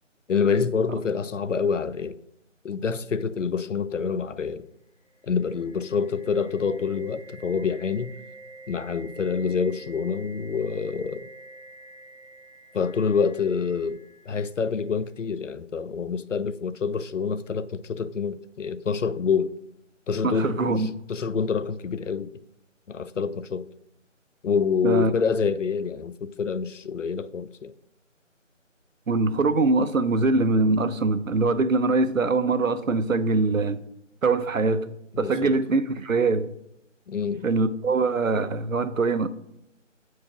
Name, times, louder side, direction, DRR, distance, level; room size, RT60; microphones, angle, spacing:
voice 1, 0.3-2.2 2.6-4.7 5.3-8.1 8.7-11.3 12.7-14.0 14.3-19.5 20.1-20.8 21.1-22.3 22.9-23.7 24.4-27.7 35.1-35.5 37.1-37.5, left 6 dB, 70° left, 0.5 m, -27 dB
sound 1, 5.0-14.9, right 2 dB, 10° left, 1.0 m, -47 dB
voice 2, 20.2-20.9 24.8-25.1 29.1-33.8 34.2-36.5 37.4-39.3, right 3 dB, 85° right, 0.7 m, -23 dB
8.6 x 4.7 x 2.9 m
figure-of-eight pair, 160°, 39 cm